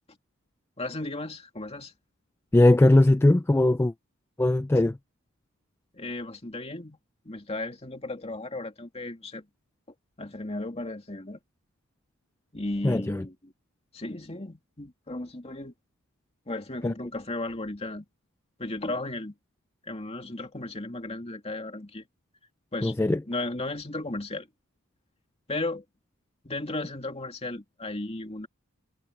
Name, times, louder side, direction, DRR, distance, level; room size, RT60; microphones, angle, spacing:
voice 1, 0.8-1.9 5.9-7.0 7.2-9.4 10.2-11.4 12.5-13.5 13.9-15.7 16.5-18.1 18.6-19.3 19.9-22.0 22.7-23.0 23.2-24.5 25.5-25.8 26.4-28.5, left 2 dB, 25° left, 2.5 m, -35 dB
voice 2, 2.5-3.9 4.4-5.0 12.8-13.2 16.8-16.9 22.8-23.2, left 1 dB, 10° left, 0.3 m, -20 dB
head